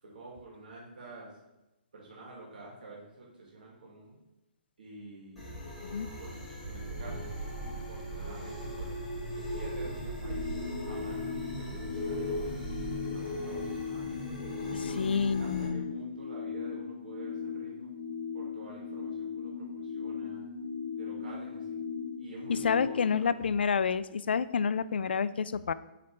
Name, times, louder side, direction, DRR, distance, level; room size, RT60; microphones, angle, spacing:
voice 1, 0.0-1.4 1.9-4.2 4.8-5.6 6.2-9.0 9.5-12.7 13.1-14.1 14.7-17.9 18.3-20.5 20.9-21.8 22.2-23.4, right 2 dB, 60° right, -3 dB, 1.9 m, -48 dB
sound 1, 5.4-15.7, left 1 dB, ahead, 2.1 m, -40 dB
sound 2, 6.6-13.1, right 3 dB, 40° right, 0.5 m, -41 dB
sound 3, 10.2-23.2, left 6 dB, 20° left, 1.1 m, -38 dB
voice 2, 15.0-15.9 22.5-25.7, left 6 dB, 85° left, 16 dB, 0.3 m, -29 dB
7.8 x 3.3 x 4.3 m, 0.99 s
hypercardioid pair, 175°, 5 cm